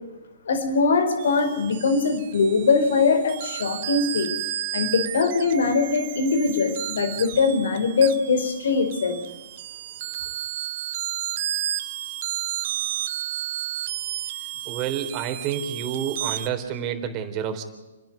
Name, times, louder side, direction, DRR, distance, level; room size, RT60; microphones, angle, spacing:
voice 1, 0.5-4.3 4.7-9.2, left 4 dB, 70° left, 8 dB, 4.5 m, -22 dB
sound 1, 1.2-16.5, right 13 dB, 50° right, 1.3 m, -32 dB
voice 2, 14.7-17.6, right 8 dB, 30° right, 6 dB, 3.7 m, -29 dB
29.5 x 10.5 x 9.5 m, 1.1 s
hypercardioid pair, 130°, 0 cm